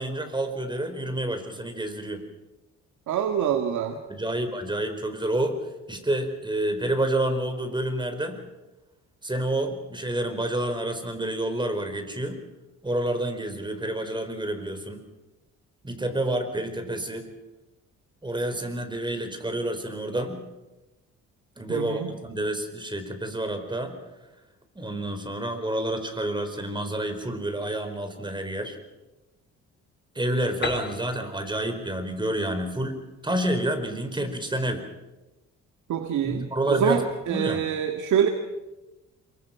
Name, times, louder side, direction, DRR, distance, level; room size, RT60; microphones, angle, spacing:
voice 1, 0.0-2.2 4.2-5.6 5.9-8.4 9.2-12.4 12.8-15.0 15.8-17.3 18.2-20.4 21.6-24.0 24.7-28.8 30.1-34.9 36.2-37.0 37.3-37.6, right 1 dB, 15° right, 7 dB, 4.7 m, -29 dB
voice 2, 3.1-4.0 21.7-22.2 35.9-38.3, right 8 dB, 75° right, 5 dB, 2.1 m, -25 dB
Piano, 30.6-34.3, left 4 dB, 35° left, 3.7 m, -38 dB
27.0 x 23.5 x 6.0 m, 1.0 s
cardioid pair, 90°, 30 cm